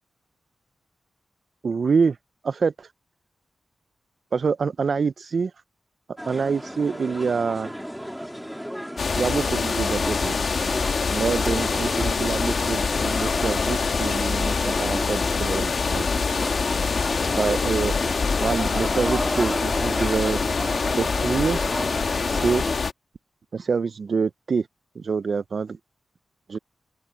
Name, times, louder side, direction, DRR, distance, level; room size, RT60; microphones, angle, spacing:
voice 1, 1.6-2.2 2.4-2.9 4.3-5.5 6.3-7.8 9.2-10.4 11.1-16.2 17.4-20.4 21.0-21.6 22.2-22.6 23.5-24.7 25.0-25.8 26.5-26.6, right 5 dB, 50° right, 0.3 m, -26 dB
sound 1, 6.2-22.8, equal, ahead, 3.0 m, -34 dB
sound 2, 9.0-22.9, left 5 dB, 55° left, 1.2 m, -25 dB
open air
wide cardioid pair, 170°, 0 cm